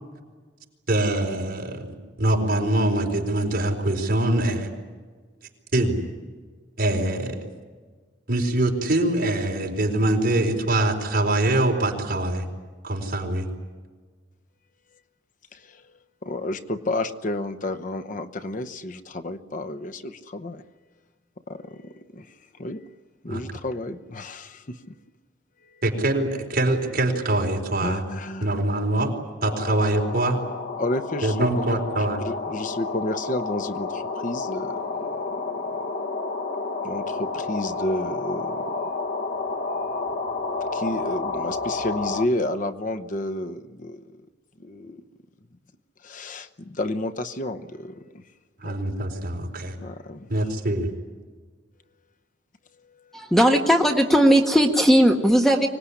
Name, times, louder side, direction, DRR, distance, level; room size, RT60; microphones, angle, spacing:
voice 1, 0.9-4.7 5.7-6.0 6.8-7.5 8.3-12.5 12.8-13.5 23.3-23.4 25.8-28.0 28.4-29.1 29.4-30.4 31.2-32.2 48.6-49.8 50.3-50.9, right 1 dB, 50° right, 1 dB, 4.4 m, -23 dB
voice 2, 15.5-20.6 21.5-22.8 23.2-25.0 27.8-28.5 30.8-35.1 35.7-35.8 36.8-39.0 39.6-40.0 40.6-44.1 44.6-45.0 46.0-48.2 48.6-48.8 49.8-50.3 52.8-53.2, left 1 dB, 45° left, 7 dB, 0.9 m, -31 dB
sound 1, 29.4-42.3, left 3 dB, 60° left, 1.2 m, -30 dB
voice 3, 53.1-55.7, equal, ahead, 3 dB, 1.4 m, -17 dB
25.0 x 19.0 x 10.0 m, 1.4 s
head